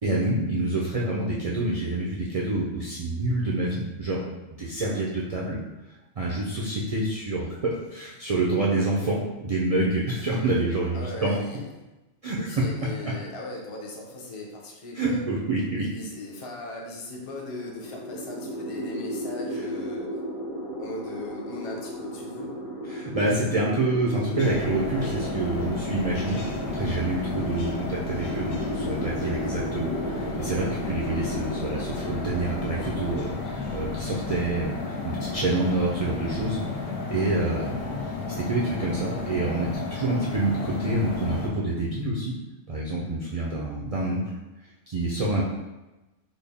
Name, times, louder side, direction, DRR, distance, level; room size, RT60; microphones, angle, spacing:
voice 1, 0.0-4.2 4.6-5.6 6.2-11.3 12.2-12.5 13.0-13.1 15.0-15.9 22.9-36.6 37.1-37.8 38.3-42.3 42.7-44.2 44.9-45.4, right 2 dB, 70° right, -5 dB, 0.3 m, -27 dB
voice 2, 10.9-11.7 12.4-15.3 15.8-20.2 20.8-22.5 37.6-37.7, left 2 dB, 40° left, -2 dB, 0.5 m, -38 dB
sound 1, 17.3-33.2, equal, 60° left, 1.0 m, -35 dB
sound 2, 24.4-41.5, left 3 dB, 90° left, 1.0 m, -33 dB
4.0 x 2.0 x 3.4 m, 1.0 s
omnidirectional pair, 1.3 m